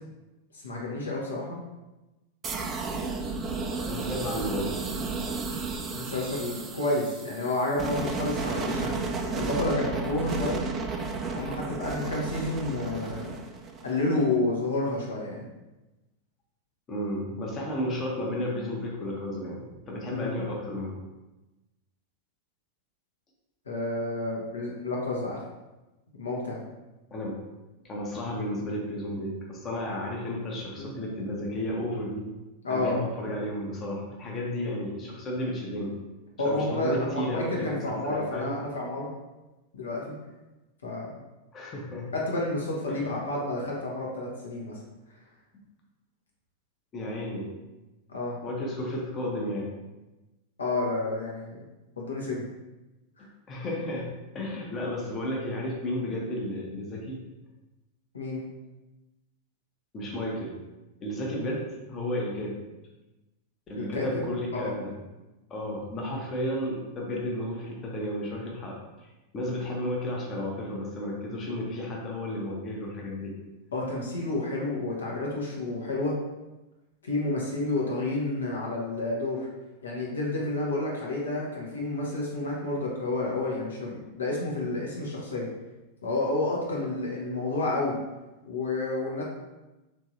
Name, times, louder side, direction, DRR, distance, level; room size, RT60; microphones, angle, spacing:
voice 1, 0.5-1.6 5.9-9.0 9.3-10.6 11.3-13.3 13.8-15.4 20.1-20.3 23.7-25.4 26.1-26.6 30.7-30.9 32.6-33.0 36.4-39.1 39.7-40.1 40.8-41.1 42.1-44.8 48.1-48.4 50.6-51.6 52.0-52.4 53.2-53.3 58.1-58.4 63.7-64.1 64.5-64.7 73.7-76.2 77.0-79.5 79.8-85.5 86.0-88.0 88.4-89.2, left 2 dB, 70° left, -3 dB, 0.6 m, -30 dB
sound 1, 2.4-14.2, right 4 dB, 25° right, 0.3 m, -33 dB
voice 2, 3.9-4.8 16.9-20.9 27.1-27.4 27.8-32.3 32.7-35.9 36.5-38.6 41.5-42.1 42.9-43.0 46.9-47.5 48.4-49.7 53.5-54.1 54.3-57.2 59.9-60.6 61.0-62.6 63.7-64.9 65.5-69.1 69.3-73.3, left 1 dB, 25° left, -2 dB, 0.7 m, -33 dB
3.1 x 2.6 x 2.5 m, 1.1 s
figure-of-eight pair, 90°, 0 cm